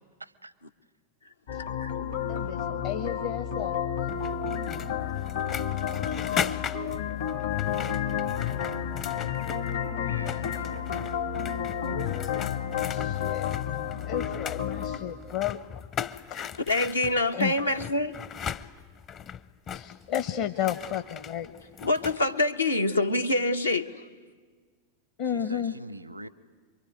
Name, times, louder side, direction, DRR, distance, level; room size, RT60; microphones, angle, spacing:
sound 1, 1.5-15.0, left 9 dB, 65° left, 2.1 m, -31 dB
voice 1, 1.6-1.9 16.7-18.2 21.8-24.1, left 2 dB, 80° left, 7 dB, 1.0 m, -26 dB
voice 2, 2.3-3.8 11.7-12.5 12.9-13.6 14.0-15.9 16.3-16.4 17.3-17.5 19.7-21.5 25.2-25.7, left 10 dB, 45° left, 9 dB, 1.0 m, -33 dB
sound 2, 4.1-9.9 10.1-22.2, left 8 dB, 30° left, 0.7 m, -38 dB
voice 3, 10.0-11.3 25.3-26.3, right 1 dB, 85° right, 19 dB, 0.7 m, -44 dB
26.5 x 23.5 x 9.6 m, 1.5 s
figure-of-eight pair, 90°, 0 cm